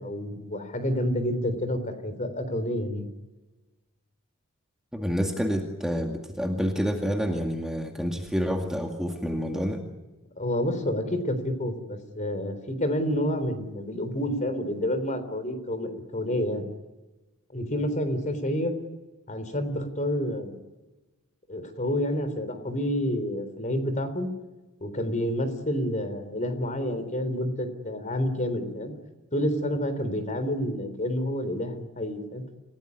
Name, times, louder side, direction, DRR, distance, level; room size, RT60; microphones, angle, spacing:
voice 1, 0.0-3.1 10.4-16.7 17.5-18.7 19.3-20.6 21.5-24.3 24.8-28.9 29.3-32.4, left 1 dB, 35° left, 11 dB, 3.8 m, -29 dB
voice 2, 4.9-9.9, equal, 5° right, 2 dB, 2.2 m, -28 dB
28.5 x 17.5 x 9.6 m, 1.1 s
head